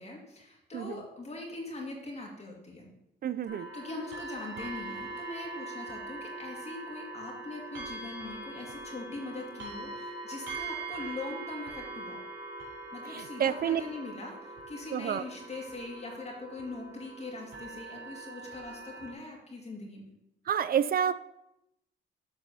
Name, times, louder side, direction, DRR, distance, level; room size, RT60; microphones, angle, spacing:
voice 1, 0.0-2.9 3.7-12.2 12.9-20.0, left 2 dB, 35° left, -1 dB, 2.2 m, -42 dB
voice 2, 3.2-3.7 13.1-13.8 14.9-15.2 20.5-21.1, right 9 dB, 50° right, 14 dB, 0.4 m, -29 dB
sound 1, 3.5-19.1, right 2 dB, 75° right, 3.3 m, -42 dB
7.7 x 4.1 x 6.8 m, 0.82 s
cardioid pair, 90°, 20 cm